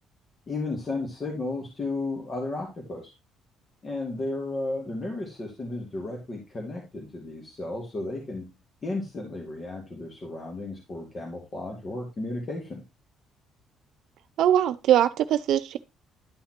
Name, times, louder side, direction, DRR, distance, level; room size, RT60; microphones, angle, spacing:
voice 1, 0.5-3.1 3.8-8.5 8.8-12.8, left 2 dB, 35° left, 2.3 m, -33 dB
voice 2, 14.4-15.8, right 11 dB, 75° right, 0.5 m, -21 dB
11.5 x 5.7 x 2.9 m
cardioid pair, 90°, 0 cm